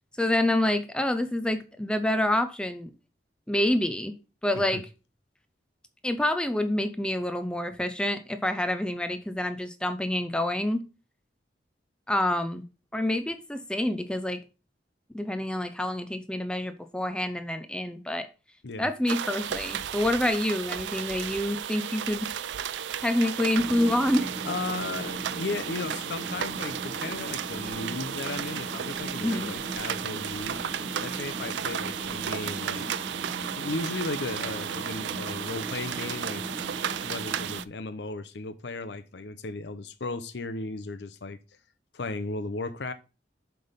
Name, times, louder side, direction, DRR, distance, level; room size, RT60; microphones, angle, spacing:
voice 1, 0.2-2.9 3.5-4.1 4.4-4.8 6.0-10.8 12.1-12.6 12.9-14.4 15.1-18.3 18.8-22.3 23.0-24.3 29.2-29.5, left 1 dB, 5° left, 0.5 m, -27 dB
sound 1, 19.1-37.6, right 9 dB, 90° right, 0.4 m, -34 dB
sound 2, 23.5-37.6, right 1 dB, 30° right, 1.0 m, -39 dB
voice 2, 24.4-30.6 31.0-32.9 33.6-36.4 37.0-41.4 41.9-42.9, left 3 dB, 80° left, 0.7 m, -35 dB
7.6 x 3.4 x 5.6 m
head